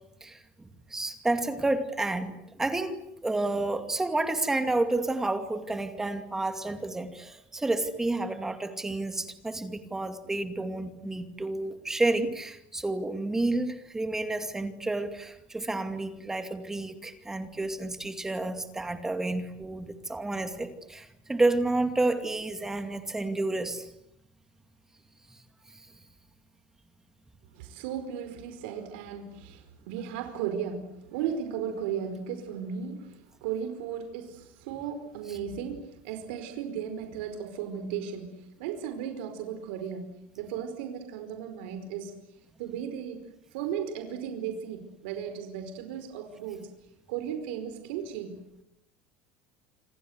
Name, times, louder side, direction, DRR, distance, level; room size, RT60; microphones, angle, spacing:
voice 1, 0.2-2.9 3.2-23.9 25.3-25.4 25.7-25.9, right 2 dB, 10° right, 8 dB, 2.4 m, -30 dB
voice 2, 27.5-42.2 42.6-43.2 43.5-46.7 47.1-48.4, right 8 dB, 85° right, 7 dB, 4.9 m, -36 dB
28.0 x 26.0 x 8.2 m, 0.83 s
cardioid pair, 165°, 6 cm